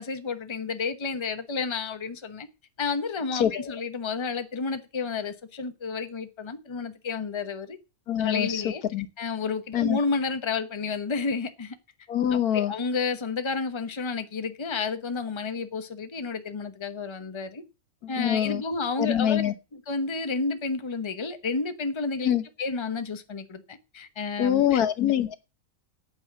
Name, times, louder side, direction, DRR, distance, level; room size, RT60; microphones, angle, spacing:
voice 1, 0.0-2.5 2.8-7.8 8.2-8.8 9.2-11.7 12.5-17.6 18.1-19.4 19.9-22.3 22.6-24.8, left 4 dB, 20° left, 0.9 m, -31 dB
voice 2, 3.3-3.8 8.1-9.1 9.7-10.0 12.1-12.7 18.0-18.6 19.0-19.5 22.2-22.4 24.4-25.4, left 10 dB, 85° left, 1.5 m, -25 dB
8.7 x 8.5 x 7.6 m
omnidirectional pair, 1.6 m